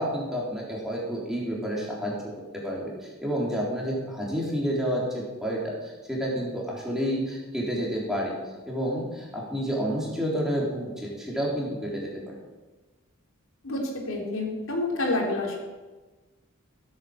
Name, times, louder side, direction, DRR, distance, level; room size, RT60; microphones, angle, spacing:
voice 1, 0.0-2.1 2.5-8.4 8.7-12.3, equal, ahead, -4 dB, 3.6 m, -29 dB
voice 2, 13.6-15.6, left 2 dB, 75° left, 0 dB, 3.7 m, -28 dB
16.0 x 8.7 x 7.7 m, 1.2 s
head